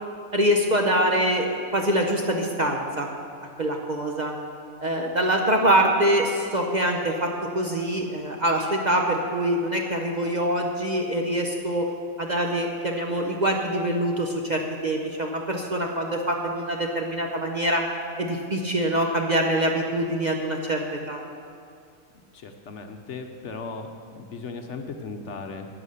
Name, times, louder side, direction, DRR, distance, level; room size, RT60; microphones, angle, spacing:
voice 1, 0.3-3.1 3.6-4.3 4.8-11.9 12.2-17.8 18.2-21.2, right 1 dB, 40° right, 1 dB, 0.8 m, -24 dB
voice 2, 22.3-23.9 24.2-25.7, left 4 dB, 60° left, 5 dB, 1.0 m, -37 dB
11.0 x 9.1 x 6.5 m, 2.4 s
omnidirectional pair, 1.5 m